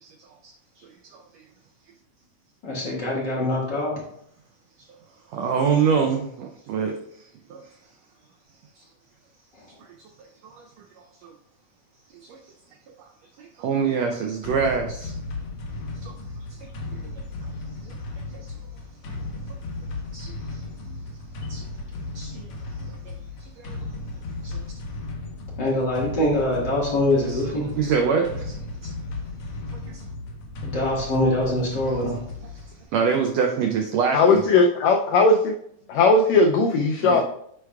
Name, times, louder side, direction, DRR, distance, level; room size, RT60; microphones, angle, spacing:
voice 1, 0.0-1.4 5.3-7.6 8.8-8.9 10.4-11.3 12.2-12.4 13.0-13.1 13.4-15.1 16.0-16.1 16.5-16.6 17.8-17.9 18.3-18.5 20.1-20.6 21.5-21.6 22.1-22.5 22.8-23.1 23.4-23.8 24.4-24.6 27.3-27.4 27.7-28.5 28.8-28.9 29.7-30.0 32.9-34.5 37.0-37.2, right 6 dB, 85° right, 3 dB, 1.5 m, -26 dB
voice 2, 2.6-3.9 9.5-9.7 25.6-27.7 30.6-32.2, left 1 dB, 40° left, -5 dB, 1.9 m, -24 dB
sound 1, 14.4-32.8, left 2 dB, 65° left, 1.4 m, -35 dB
voice 3, 34.1-35.5 35.9-37.2, left 3 dB, 85° left, 3 dB, 1.5 m, -18 dB
9.6 x 4.6 x 2.3 m, 0.70 s
omnidirectional pair, 3.6 m